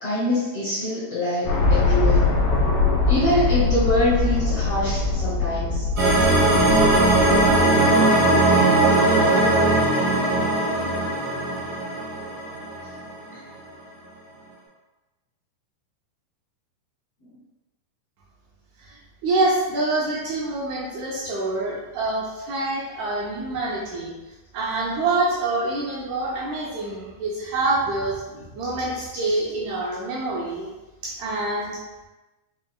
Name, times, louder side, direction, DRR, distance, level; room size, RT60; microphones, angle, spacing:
voice 1, 0.0-2.2 3.1-5.9, left 1 dB, 65° left, -10 dB, 1.5 m, -24 dB
sound 1, 1.4-7.7, left 3 dB, 80° left, 2.4 m, -22 dB
sound 2, 6.0-13.0, right 2 dB, 55° right, 0.9 m, -19 dB
voice 2, 19.2-24.1 24.5-28.2 28.5-30.7 31.0-31.7, right 2 dB, 80° right, -6 dB, 1.8 m, -26 dB
5.5 x 2.8 x 2.2 m, 1.1 s
omnidirectional pair, 3.7 m